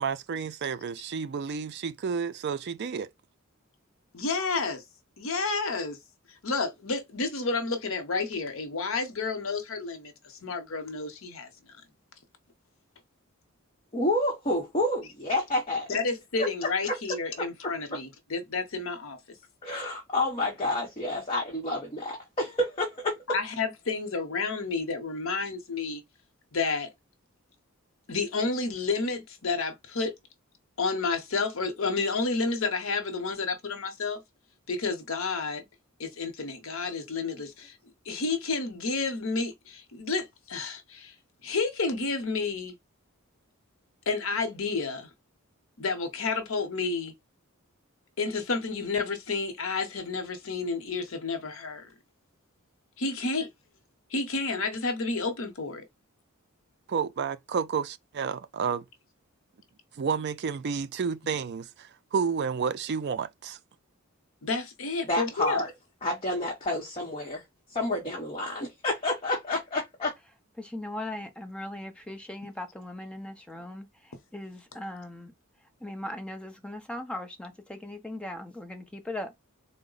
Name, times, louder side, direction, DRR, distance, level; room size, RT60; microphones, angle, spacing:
voice 1, 0.0-3.1 56.9-58.9 60.0-63.6, right 6 dB, 50° right, 0.4 m, -31 dB
voice 2, 4.1-4.8 5.2-6.0 6.4-11.5 15.9-19.2 23.3-26.0 26.5-26.9 28.1-30.1 30.8-34.2 34.7-35.6 36.0-37.8 38.0-41.1 41.4-42.7 44.1-45.1 45.8-47.2 48.2-51.9 53.0-53.5 54.1-55.9 64.4-65.6, left 4 dB, 65° left, 0.8 m, -30 dB
voice 3, 13.9-15.9 16.4-16.5 16.9-17.0 17.4-17.7 19.6-23.2 65.1-65.7 66.0-67.4 67.7-70.1, left 1 dB, 25° left, 0.9 m, -29 dB
voice 4, 70.6-75.3 75.8-79.3, left 1 dB, 5° left, 0.6 m, -39 dB
3.7 x 2.1 x 3.8 m
head